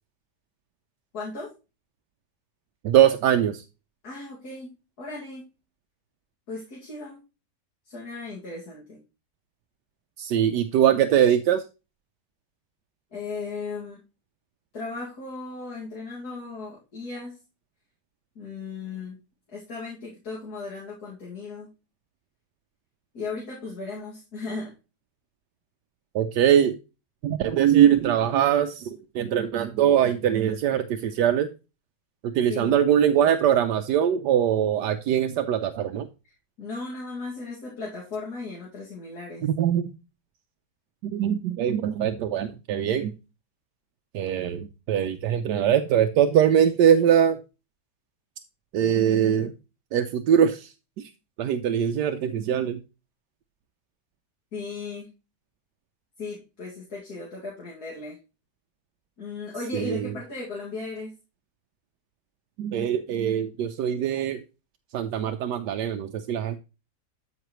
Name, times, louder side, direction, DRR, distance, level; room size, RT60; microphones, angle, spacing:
voice 1, 1.1-1.5 4.0-5.4 6.5-7.2 7.9-9.0 13.1-14.0 14.7-17.4 18.4-19.2 19.5-21.7 23.1-24.7 32.5-32.8 36.6-39.5 54.5-55.1 56.2-58.2 59.2-61.1, left 3 dB, 65° left, -4 dB, 2.8 m, -36 dB
voice 2, 2.8-3.6 10.2-11.6 26.1-26.8 27.2-31.5 32.2-36.1 39.4-39.9 41.0-43.1 44.1-47.4 48.7-49.5 49.9-50.7 51.4-52.8 59.7-60.1 62.6-64.4 64.9-66.6, right 9 dB, 80° right, 7 dB, 1.3 m, -22 dB
12.5 x 5.9 x 3.1 m, 0.30 s
omnidirectional pair, 1.8 m